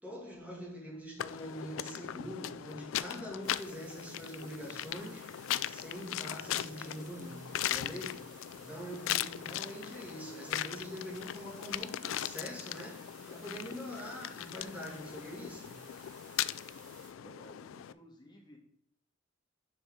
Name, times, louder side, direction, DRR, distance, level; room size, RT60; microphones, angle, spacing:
voice 1, 0.0-15.8, equal, 10° right, 2.3 m, -44 dB
sound 1, 1.2-17.9, left 12 dB, 90° left, 0.3 m, -39 dB
sound 2, 3.4-17.1, right 4 dB, 45° right, 1.6 m, -57 dB
voice 2, 17.2-18.6, equal, 20° left, 1.8 m, -55 dB
7.6 x 5.5 x 3.7 m
head